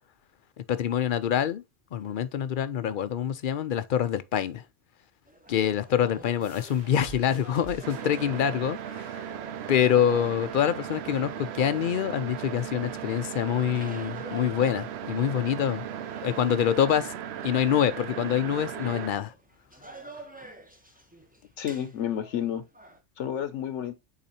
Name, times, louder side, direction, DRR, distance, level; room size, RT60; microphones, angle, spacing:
voice 1, 0.7-1.6 1.9-4.6 5.5-9.2 9.7-15.9 16.2-17.1 17.4-19.3, left 9 dB, 60° left, 0.6 m, -26 dB
sound 1, 5.3-23.0, right 1 dB, 10° right, 0.7 m, -49 dB
sound 2, 6.4-11.8, right 3 dB, 90° right, 2.0 m, -50 dB
sound 3, 7.8-19.1, right 9 dB, 65° right, 0.8 m, -37 dB
voice 2, 21.6-22.6 23.2-23.9, left 10 dB, 80° left, 1.0 m, -30 dB
8.5 x 4.0 x 2.8 m
omnidirectional pair, 1.2 m